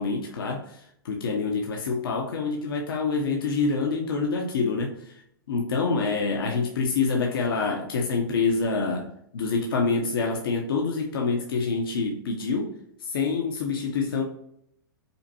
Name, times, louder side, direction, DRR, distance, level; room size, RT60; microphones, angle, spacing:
voice 1, 0.0-5.2 5.5-12.7 13.0-14.2, left 4 dB, 85° left, 0 dB, 0.8 m, -26 dB
5.3 x 2.2 x 2.8 m, 0.71 s
hypercardioid pair, 145°, 12 cm